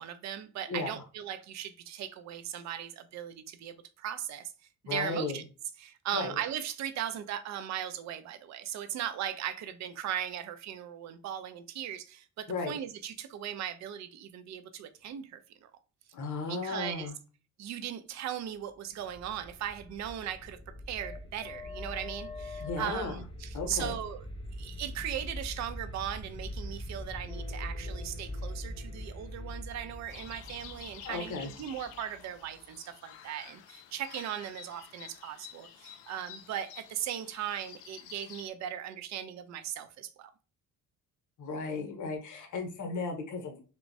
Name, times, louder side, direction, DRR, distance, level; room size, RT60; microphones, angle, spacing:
voice 1, 0.0-4.5 4.8-5.4 5.8-15.7 16.5-17.1 17.6-20.6 20.9-24.3 24.5-40.3, right 10 dB, 40° right, 0.5 m, -38 dB
voice 2, 0.7-1.0 4.9-5.4 6.1-6.4 12.5-12.8 16.1-17.1 22.6-23.2 23.5-24.0 31.0-31.5 41.4-43.6, left 4 dB, 40° left, 0.9 m, -35 dB
sound 1, 18.9-32.6, left 1 dB, 15° left, 0.4 m, -42 dB
sound 2, 30.1-38.5, left 9 dB, 65° left, 0.5 m, -50 dB
2.9 x 2.2 x 2.5 m
hypercardioid pair, 50°, 45 cm